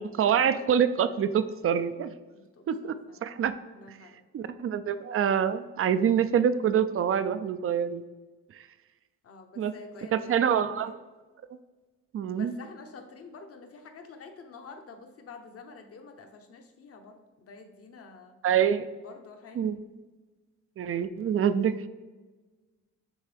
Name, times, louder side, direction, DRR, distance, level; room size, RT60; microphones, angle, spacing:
voice 1, 0.0-2.2 2.7-2.9 3.2-3.5 3.9-4.0 4.3-8.0 8.5-8.7 9.6-9.7 10.1-10.9 12.1-12.5 18.4-18.9 19.6-19.8 20.8-21.7, right 8 dB, 45° right, 12 dB, 0.5 m, -26 dB
voice 2, 2.3-3.2 3.7-4.2 9.2-10.4 10.8-10.9 12.3-18.4 19.0-19.6 21.2-21.3, left 4 dB, 50° left, 5 dB, 1.0 m, -48 dB
10.0 x 3.6 x 3.5 m, 1.3 s
cardioid pair, 90°, 30 cm